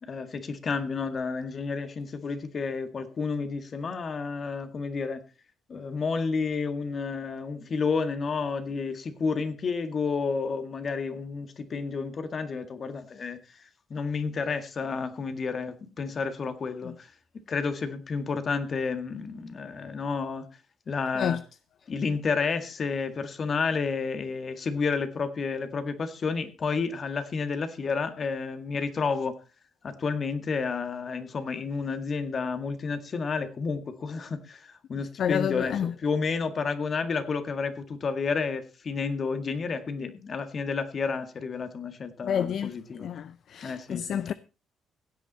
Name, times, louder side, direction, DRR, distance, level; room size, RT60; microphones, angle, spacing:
voice 1, 0.0-5.2 5.7-13.6 13.9-17.1 17.5-20.5 20.9-21.4 21.9-29.4 29.8-43.1 43.6-44.2, left 5 dB, 50° left, 1.9 m, -31 dB
voice 2, 35.2-35.9 42.2-42.7 43.0-44.3, left 8 dB, 65° left, 0.5 m, -29 dB
16.0 x 8.7 x 4.2 m
cardioid pair, 75°, 0 cm